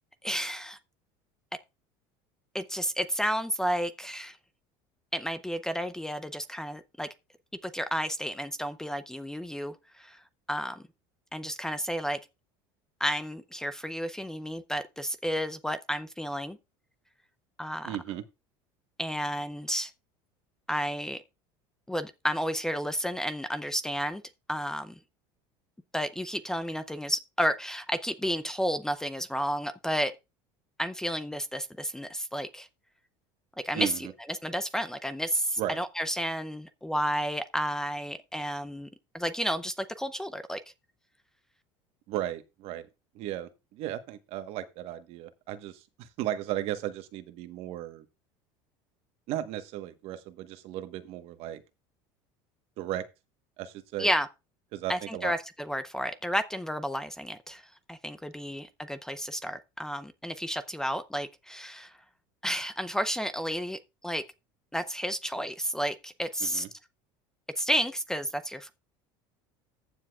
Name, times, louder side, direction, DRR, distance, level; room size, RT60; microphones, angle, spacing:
voice 1, 0.2-0.8 2.5-4.4 5.1-7.1 7.6-10.2 10.5-10.8 11.3-12.2 13.0-16.6 17.6-18.0 19.0-19.9 20.7-21.2 21.9-24.2 24.5-24.9 25.9-30.1 30.8-32.7 33.6-38.9 39.1-40.6 54.0-54.3 54.9-57.6 57.9-61.9 62.4-64.2 64.7-66.7 67.6-68.7, equal, 5° left, 0.5 m, -31 dB
voice 2, 17.8-18.2 33.7-34.1 35.6-35.8 42.1-42.9 43.1-48.0 49.3-51.6 52.8-53.0 53.6-54.1 54.7-55.3 66.4-66.7, right 12 dB, 60° right, 1.2 m, -35 dB
14.5 x 7.2 x 2.4 m
supercardioid pair, 130°, 11 cm